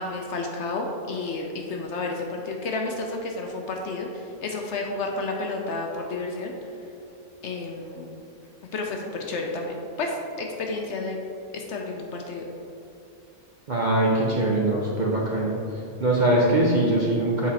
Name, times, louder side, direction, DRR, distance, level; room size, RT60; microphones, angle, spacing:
voice 1, 0.0-6.5 7.4-8.1 8.7-11.2 11.5-12.5, left 3 dB, 65° left, 1 dB, 0.8 m, -31 dB
voice 2, 13.7-15.6 16.0-17.5, right 1 dB, 45° right, -3 dB, 0.6 m, -22 dB
7.3 x 4.1 x 4.1 m, 2.6 s
omnidirectional pair, 1.5 m